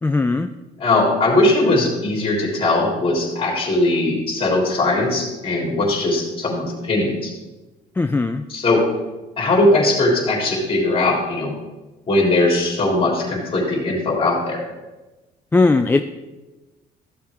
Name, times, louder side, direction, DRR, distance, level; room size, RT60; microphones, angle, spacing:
voice 1, 0.0-0.5 8.0-8.4 15.5-16.0, left 3 dB, 10° left, 7 dB, 0.4 m, -18 dB
voice 2, 0.8-7.3 8.5-8.8 9.4-11.5 12.1-14.6, left 2 dB, 35° left, -1 dB, 3.5 m, -19 dB
14.0 x 7.1 x 3.6 m, 1.1 s
cardioid pair, 110°, 17 cm